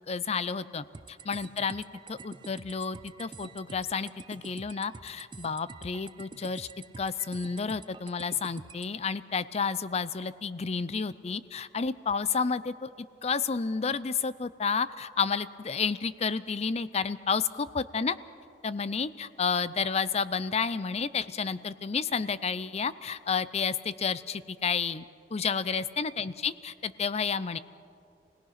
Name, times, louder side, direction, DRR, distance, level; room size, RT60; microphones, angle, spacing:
voice 1, 0.1-0.8 1.2-6.7 7.0-12.9 13.2-18.2 18.6-25.0 25.3-27.6, left 5 dB, 35° left, 16 dB, 0.5 m, -31 dB
sound 1, 0.9-8.9, right 4 dB, 25° right, 0.4 m, -48 dB
28.0 x 18.0 x 5.8 m, 2.4 s
head